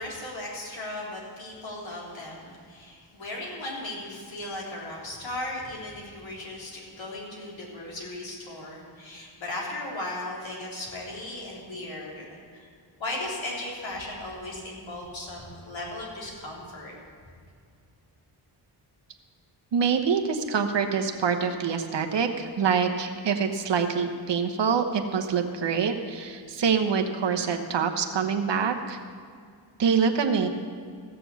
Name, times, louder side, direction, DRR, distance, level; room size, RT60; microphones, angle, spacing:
voice 1, 0.0-12.7 13.0-16.9, left 1 dB, 70° left, -4 dB, 3.6 m, -37 dB
voice 2, 19.7-29.0 29.8-30.5, right 6 dB, 60° right, 5 dB, 1.1 m, -25 dB
15.5 x 6.9 x 7.0 m, 2.2 s
wide cardioid pair, 95°, 47 cm